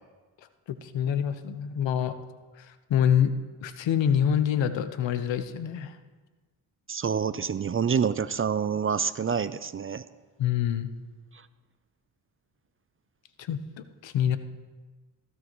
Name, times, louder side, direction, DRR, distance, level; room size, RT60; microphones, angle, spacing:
voice 1, 0.7-2.1 2.6-3.3 3.6-6.0 10.4-10.9 13.4-14.4, left 9 dB, 70° left, 10 dB, 1.0 m, -26 dB
voice 2, 6.9-10.0, right 6 dB, 30° right, 15 dB, 0.5 m, -27 dB
16.0 x 15.5 x 3.1 m, 1.3 s
cardioid pair, 70°, 46 cm